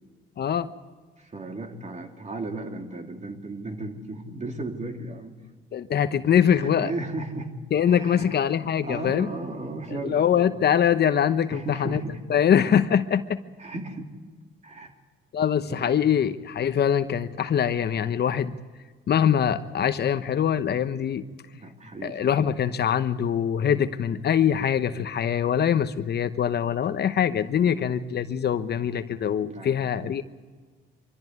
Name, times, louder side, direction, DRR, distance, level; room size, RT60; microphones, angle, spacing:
voice 1, 0.4-0.7 5.7-6.9 7.7-9.3 10.0-12.0 12.3-13.4 15.3-18.5 19.1-21.2 22.0-30.2, left 8 dB, 55° left, 11 dB, 1.0 m, -23 dB
voice 2, 1.2-5.7 6.5-7.5 7.9-8.4 8.8-10.8 11.5-12.2 13.6-14.2 14.6-14.9 15.7-15.9 21.5-22.5 27.6-28.0 28.4-28.5 29.4-29.9, right 2 dB, 35° right, 4 dB, 3.1 m, -36 dB
24.5 x 14.0 x 9.5 m, 1.4 s
cardioid pair, 90°, 20 cm